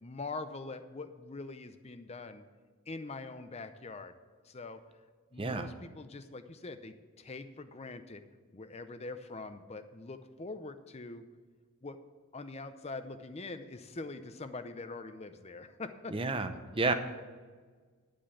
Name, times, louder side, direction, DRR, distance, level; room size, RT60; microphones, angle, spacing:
voice 1, 0.0-2.4 2.9-4.1 4.4-4.8 5.3-8.2 8.5-11.3 11.8-12.0 12.3-16.2, left 3 dB, 30° left, 10 dB, 0.6 m, -43 dB
voice 2, 16.1-16.5 16.8-16.9, right 3 dB, 25° right, 8 dB, 0.7 m, -30 dB
11.0 x 5.1 x 8.4 m, 1.5 s
head